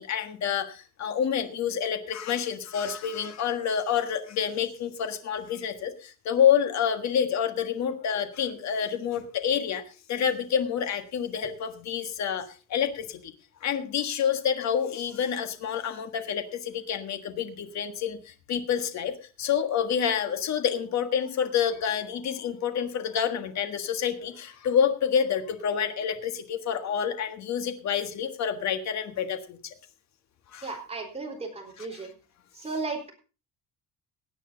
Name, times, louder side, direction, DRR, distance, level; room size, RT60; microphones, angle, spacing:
voice 1, 0.0-9.8 10.1-13.3 13.6-19.1 19.4-29.7 30.5-30.7 31.8-32.0, left 8 dB, 55° left, 8 dB, 1.6 m, -28 dB
voice 2, 30.6-32.1 32.5-33.1, right 3 dB, 20° right, 2 dB, 3.9 m, -35 dB
17.0 x 9.2 x 3.9 m, 0.34 s
cardioid pair, 155°, 33 cm